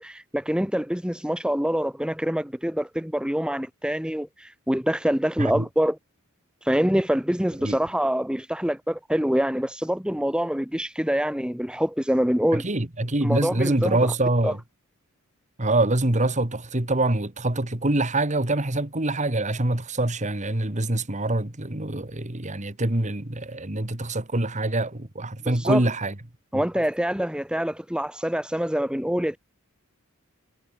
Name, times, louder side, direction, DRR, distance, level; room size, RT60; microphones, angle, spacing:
voice 1, 0.0-6.0 6.6-12.7 13.2-14.0 14.4-14.5 25.5-25.8 26.5-29.4, equal, 5° right, 1.8 m, -25 dB
voice 2, 12.5-14.6 15.6-26.1 26.5-26.6, right 2 dB, 35° right, 2.1 m, -25 dB
head